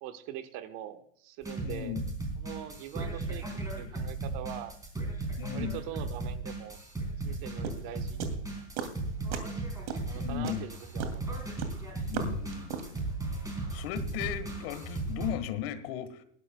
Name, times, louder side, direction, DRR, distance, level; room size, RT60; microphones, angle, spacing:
voice 1, 0.0-2.0 2.4-3.4 3.7-4.8 5.5-6.8 7.2-8.2 10.0-11.4, right 11 dB, 40° right, 9 dB, 1.1 m, -43 dB
sound 1, 1.4-15.3, right 2 dB, 10° right, 3.9 m, -36 dB
voice 2, 1.6-2.1 5.4-5.8 10.2-10.6 12.1-13.0 13.7-16.2, left 12 dB, 50° left, 13 dB, 1.5 m, -36 dB
sound 2, 7.6-9.0 9.3-9.6 9.9-13.0, right 7 dB, 70° right, 2.6 m, -36 dB
20.0 x 11.5 x 2.2 m, 0.65 s
hypercardioid pair, 135°, 37 cm